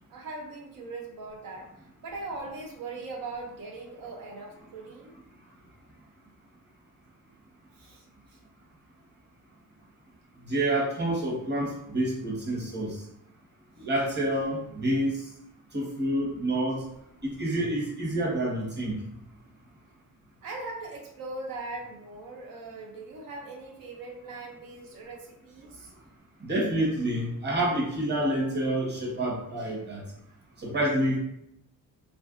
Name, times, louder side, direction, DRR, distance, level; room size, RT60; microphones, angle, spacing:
voice 1, 0.1-1.7 2.0-5.1 7.7-8.4 20.4-25.9, right 3 dB, 85° right, 0 dB, 0.6 m, -40 dB
voice 2, 10.4-13.0 13.8-15.1 15.7-16.8 17.2-19.0 26.4-30.0 30.6-31.2, right 1 dB, 30° right, -3 dB, 1.0 m, -28 dB
3.2 x 2.5 x 2.4 m, 0.74 s
wide cardioid pair, 135°, 33 cm